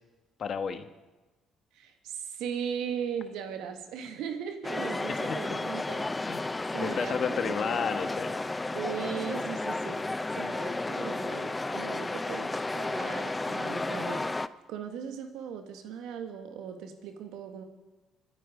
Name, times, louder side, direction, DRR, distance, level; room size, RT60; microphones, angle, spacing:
voice 1, 0.4-0.9 5.3-5.4 5.9-6.5 6.8-8.3, left 6 dB, 55° left, 9 dB, 1.4 m, -32 dB
voice 2, 1.7-6.1 6.7-7.9 8.7-10.0 10.4-14.2 14.7-17.6, right 7 dB, 80° right, 6 dB, 1.8 m, -38 dB
sound 1, 4.6-14.5, left 2 dB, 20° left, 0.6 m, -33 dB
26.5 x 9.4 x 5.1 m, 1.2 s
supercardioid pair, 65°, 0 cm